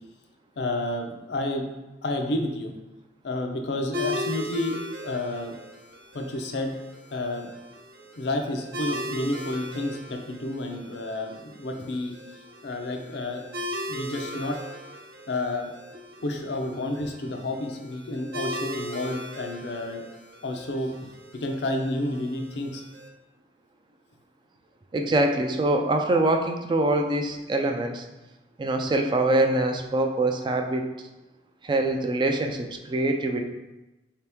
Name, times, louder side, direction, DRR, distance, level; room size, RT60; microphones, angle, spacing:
voice 1, 0.6-1.7 2.0-2.7 3.2-4.8 5.0-5.6 6.1-6.7 7.1-7.5 8.2-13.5 13.9-14.6 15.3-15.7 16.2-20.0 20.4-22.8, left 1 dB, 65° left, 3 dB, 0.5 m, -30 dB
sound 1, 3.9-23.1, left 1 dB, 60° right, 0.7 m, -38 dB
voice 2, 24.9-28.1 28.6-30.8 31.6-33.4, right 2 dB, 25° right, 4 dB, 0.3 m, -24 dB
4.1 x 2.9 x 3.4 m, 1.1 s
head